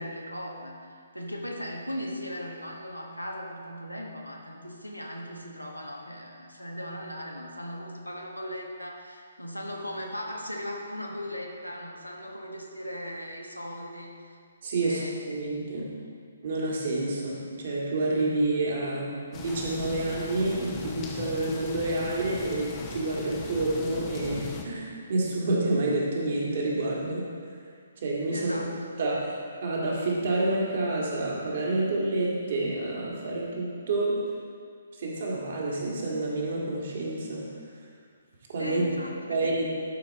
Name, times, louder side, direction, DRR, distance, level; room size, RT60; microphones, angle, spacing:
voice 1, 0.0-14.1 14.8-15.5 16.0-16.2 28.3-28.9 38.6-39.6, equal, 90° left, 0 dB, 1.3 m, -38 dB
voice 2, 14.6-15.0 15.3-15.9 16.4-27.2 28.0-28.5 29.0-29.2 29.6-34.2 35.0-37.4 38.5-38.8 39.3-39.7, right 2 dB, 45° right, -4 dB, 1.9 m, -28 dB
sound 1, 19.3-24.6, left 4 dB, 20° left, 0.8 m, -39 dB
11.5 x 5.0 x 4.2 m, 2.1 s
figure-of-eight pair, 130°, 0 cm